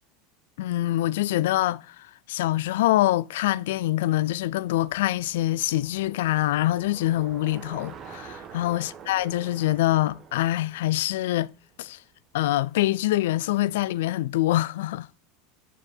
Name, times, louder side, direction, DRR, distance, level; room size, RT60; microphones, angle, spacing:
voice 1, 0.6-11.5 11.8-12.0 12.3-15.2, left 15 dB, 75° left, 0.3 m, -25 dB
Bicycle, 3.8-12.1, right 7 dB, 40° right, 1.2 m, -47 dB
9.0 x 4.8 x 3.8 m
hypercardioid pair, 95°, 0 cm